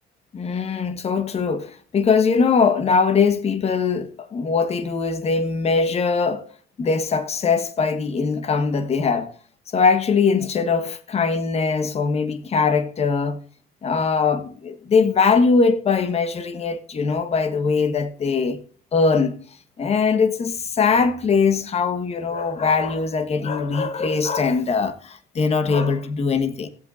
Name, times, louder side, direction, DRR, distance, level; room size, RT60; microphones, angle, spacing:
voice 1, 0.3-6.4 6.8-9.3 9.7-13.4 13.8-18.6 18.9-19.4 19.8-26.7, left 5 dB, 40° left, 1.3 m, -21 dB
17.0 x 8.1 x 2.5 m
cardioid pair, 110°, 17 cm